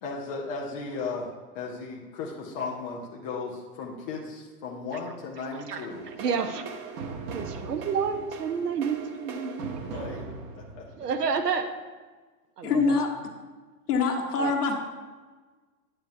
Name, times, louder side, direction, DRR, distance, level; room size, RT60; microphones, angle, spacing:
voice 1, 0.0-6.1 9.8-10.3 10.6-10.9, left 4 dB, 15° left, -2 dB, 0.3 m, -36 dB
voice 2, 5.7-6.7 7.3-7.4 7.7-9.8 11.0-11.7 12.6-12.9 14.3-14.5, right 6 dB, 75° right, 8 dB, 1.0 m, -29 dB
sound 1, 5.9-11.4, right 4 dB, 35° right, 0.9 m, -39 dB
voice 3, 12.6-13.1 13.9-14.7, left 4 dB, 70° left, 1 dB, 1.4 m, -24 dB
9.1 x 8.9 x 2.6 m, 1.4 s
hypercardioid pair, 105°, 48 cm